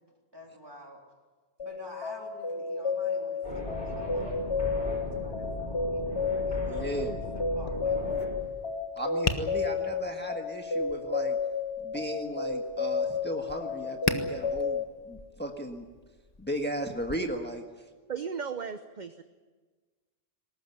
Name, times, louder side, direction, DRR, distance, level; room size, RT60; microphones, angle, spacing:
voice 1, 0.3-1.0 1.6-4.4 4.8-8.1, equal, 25° right, 1 dB, 3.6 m, -50 dB
sound 1, 1.6-14.8, left 4 dB, 80° left, 1.7 m, -32 dB
sound 2, 3.4-8.4, left 1 dB, 55° left, 6.4 m, -37 dB
voice 2, 6.7-7.2 9.0-11.4 11.8-15.9 16.4-17.6, equal, 10° left, 3 dB, 1.6 m, -35 dB
Tap, 7.5-17.1, left 3 dB, 40° left, 1.3 m, -39 dB
voice 3, 18.1-19.2, right 6 dB, 45° right, 9 dB, 1.0 m, -35 dB
20.5 x 18.5 x 9.4 m, 1.4 s
omnidirectional pair, 1.1 m